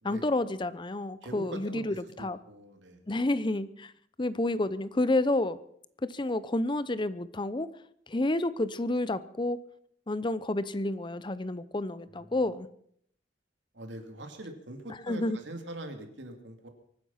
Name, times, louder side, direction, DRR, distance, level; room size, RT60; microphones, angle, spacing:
voice 1, 0.0-2.4 3.1-3.9 4.2-5.6 6.0-7.7 8.1-9.6 10.1-12.7 15.1-15.4, left 2 dB, 25° left, 16 dB, 0.6 m, -30 dB
voice 2, 1.2-3.0 12.1-12.3 13.7-16.7, right 1 dB, 85° right, 5 dB, 2.7 m, -43 dB
24.0 x 9.6 x 5.7 m, 0.66 s
head